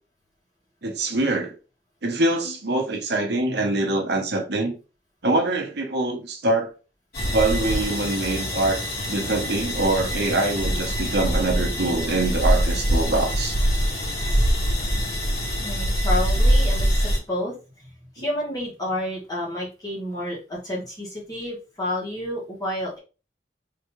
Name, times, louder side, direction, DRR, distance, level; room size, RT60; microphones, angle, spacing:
voice 1, 0.8-1.5 2.0-4.7 5.2-6.7 7.3-8.8 9.1-13.5, right 2 dB, 65° right, 1.0 m, -24 dB
sound 1, 7.1-17.2, equal, 60° left, 2.1 m, -23 dB
voice 2, 15.6-17.9 18.1-23.0, left 1 dB, 25° left, 2.1 m, -30 dB
3.8 x 3.5 x 3.1 m
head